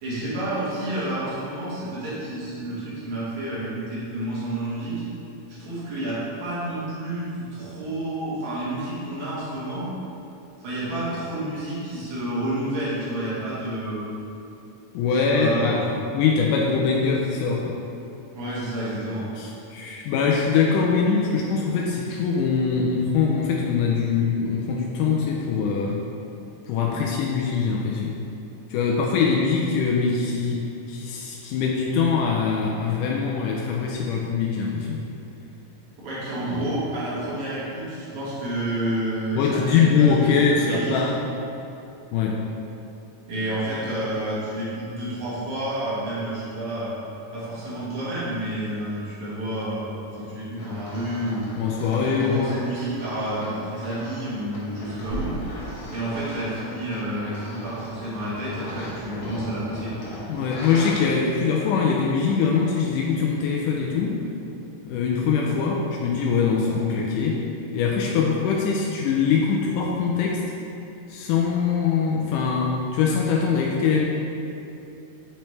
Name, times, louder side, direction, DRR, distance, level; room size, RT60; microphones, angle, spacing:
voice 1, 0.0-5.0 5.5-9.9 10.6-14.1 15.1-16.0 18.3-19.3 36.0-41.0 43.3-47.0 47.3-51.5 51.9-55.3 55.9-60.1, right 1 dB, 70° right, -9 dB, 2.8 m, -30 dB
voice 2, 14.9-15.8 16.1-17.8 19.4-26.0 26.7-28.2 28.7-35.0 36.5-36.7 39.4-41.2 42.1-42.4 51.6-52.6 60.3-64.2 64.9-67.4 67.7-70.4 71.1-74.1, left 5 dB, 85° left, -2 dB, 2.1 m, -23 dB
sound 1, 50.6-60.9, equal, 60° left, 1.4 m, -38 dB
6.7 x 4.4 x 3.2 m, 2.8 s
omnidirectional pair, 3.6 m